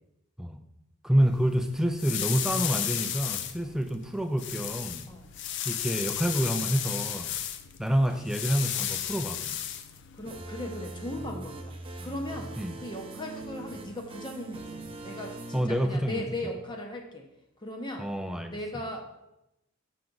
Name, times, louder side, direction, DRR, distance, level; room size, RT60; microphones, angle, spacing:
voice 1, 1.0-5.1 5.6-7.3 7.8-9.6 12.6-12.8 15.5-16.2 18.0-18.6, equal, ahead, 6 dB, 0.4 m, -28 dB
sound 1, 1.2-10.4, left 10 dB, 55° left, 0.4 m, -34 dB
voice 2, 10.1-11.8 12.0-17.3 17.6-18.1 18.5-19.2, left 1 dB, 20° left, 2 dB, 0.8 m, -38 dB
sound 2, 10.2-15.6, right 2 dB, 25° right, 0.7 m, -41 dB
6.3 x 5.9 x 3.9 m, 0.88 s
head